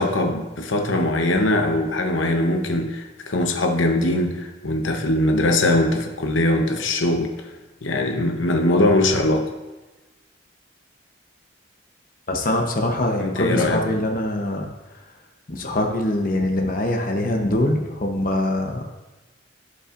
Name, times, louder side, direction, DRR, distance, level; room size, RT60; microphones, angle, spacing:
voice 1, 0.0-7.5 7.8-9.5 13.2-13.8, left 1 dB, 70° left, 3 dB, 0.9 m, -21 dB
voice 2, 12.3-14.7 15.5-18.8, left 1 dB, 45° left, 2 dB, 0.8 m, -23 dB
15.5 x 5.6 x 2.5 m, 1.1 s
head